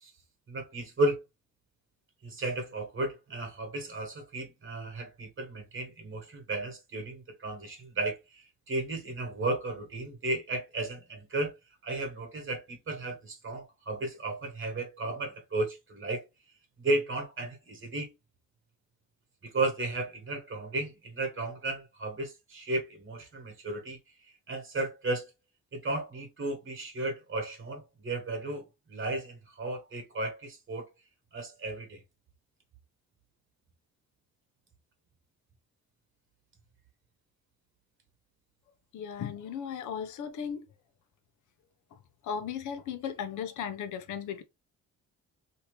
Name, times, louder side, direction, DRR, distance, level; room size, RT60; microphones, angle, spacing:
voice 1, 0.5-1.2 2.2-11.5 11.8-16.2 16.8-18.1 19.4-24.0 24.5-25.3 25.7-30.9 31.3-32.0, right 2 dB, 40° right, 1.4 m, -34 dB
voice 2, 38.9-40.7 42.2-44.4, left 7 dB, 75° left, 0.8 m, -36 dB
2.8 x 2.8 x 3.2 m
cardioid pair, 90°, 30 cm